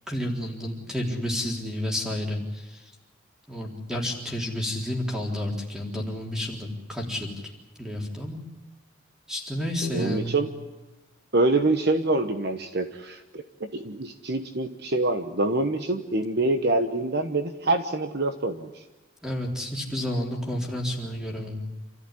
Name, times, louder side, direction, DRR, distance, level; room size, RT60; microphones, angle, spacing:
voice 1, 0.1-2.8 3.5-7.4 7.8-8.4 9.3-10.3 19.2-21.6, left 1 dB, 5° right, 0 dB, 3.9 m, -30 dB
voice 2, 9.8-10.5 11.3-18.8, right 2 dB, 50° right, 7 dB, 1.2 m, -26 dB
28.0 x 14.0 x 10.0 m, 1.1 s
head